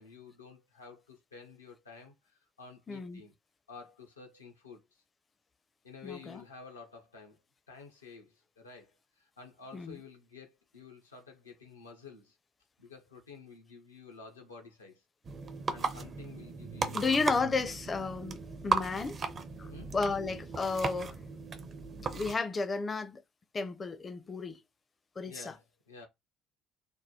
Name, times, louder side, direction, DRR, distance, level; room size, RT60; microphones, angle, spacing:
voice 1, 0.0-3.3 3.7-5.0 5.8-7.4 7.7-8.9 9.2-12.4 12.8-15.0 15.7-17.1 19.7-20.0 20.3-20.4 25.2-26.1, left 4 dB, 85° left, 0.7 m, -51 dB
voice 2, 2.9-3.2 6.0-6.4 9.7-10.0 16.9-19.2 19.6-21.2 22.1-23.2 23.5-24.6 25.2-25.5, left 4 dB, 30° left, 0.5 m, -33 dB
sound 1, 15.2-22.3, right 4 dB, 40° right, 0.6 m, -36 dB
3.5 x 2.1 x 2.8 m
figure-of-eight pair, 55°, 0 cm